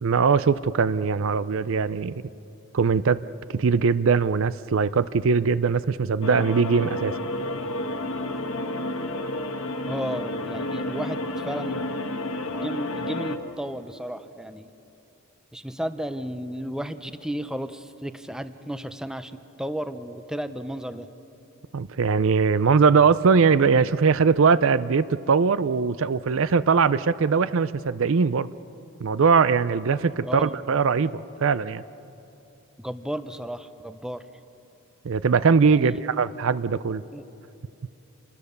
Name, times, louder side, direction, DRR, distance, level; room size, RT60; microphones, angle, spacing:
voice 1, 0.0-2.1 2.7-3.2 3.5-7.1 21.7-28.5 29.0-31.8 35.0-37.0, right 5 dB, 60° right, 16 dB, 0.5 m, -21 dB
sound 1, 6.2-13.4, left 1 dB, 65° left, 1.5 m, -30 dB
voice 2, 9.9-11.9 12.4-14.7 15.5-19.3 19.6-21.1 30.2-30.6 32.8-34.2 35.8-35.9 37.1-37.3, equal, 5° right, 11 dB, 0.6 m, -33 dB
27.5 x 21.0 x 6.8 m, 2.8 s
head